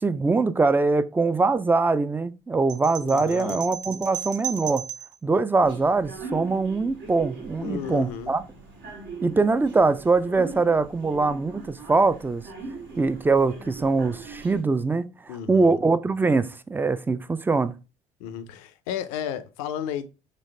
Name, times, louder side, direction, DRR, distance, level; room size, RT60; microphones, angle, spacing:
voice 1, 0.0-4.9 5.2-8.4 9.2-12.4 13.0-17.8, right 3 dB, 10° right, 0.3 m, -23 dB
sound 1, 2.7-5.2, right 8 dB, 45° right, 0.9 m, -35 dB
voice 2, 3.0-3.6 7.6-8.3 15.3-15.8 18.2-20.1, left 9 dB, 75° left, 0.5 m, -33 dB
sound 2, 5.6-14.6, right 4 dB, 70° right, 1.3 m, -40 dB
4.0 x 3.1 x 3.2 m
hypercardioid pair, 60°, 18 cm